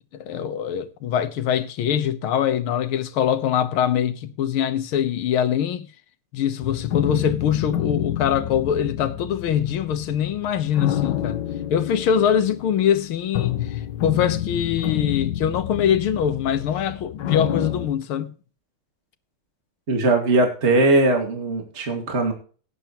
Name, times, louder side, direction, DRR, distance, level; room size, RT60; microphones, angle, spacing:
voice 1, 0.1-5.9 6.3-11.4 11.7-18.3, left 9 dB, 80° left, 1.8 m, -23 dB
sound 1, 6.6-17.9, left 11 dB, 65° left, 1.4 m, -28 dB
voice 2, 19.9-22.3, right 2 dB, 30° right, 2.3 m, -20 dB
17.5 x 9.4 x 3.0 m
omnidirectional pair, 2.3 m